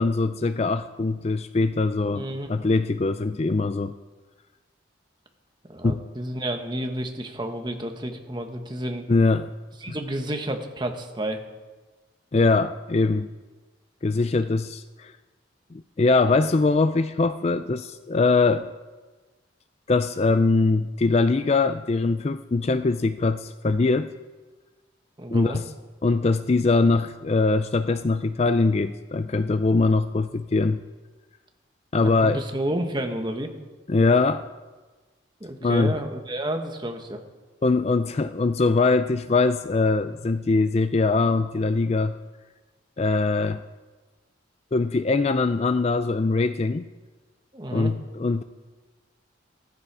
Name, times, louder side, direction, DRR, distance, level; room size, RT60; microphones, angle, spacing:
voice 1, 0.0-3.9 5.8-6.0 9.1-9.5 9.9-10.0 12.3-13.3 14.0-15.1 15.7-18.7 19.9-24.1 25.3-25.7 26.0-30.8 31.9-32.4 33.9-34.4 35.6-36.0 37.6-42.1 43.0-43.6 44.7-46.8 47.7-48.4, left 3 dB, 30° left, 11 dB, 0.4 m, -22 dB
voice 2, 2.1-2.5 5.7-9.1 9.8-11.4 25.2-25.6 32.0-33.5 35.4-37.2 47.5-47.9, right 1 dB, 20° right, 4 dB, 1.3 m, -30 dB
14.5 x 14.5 x 4.8 m, 1.2 s
head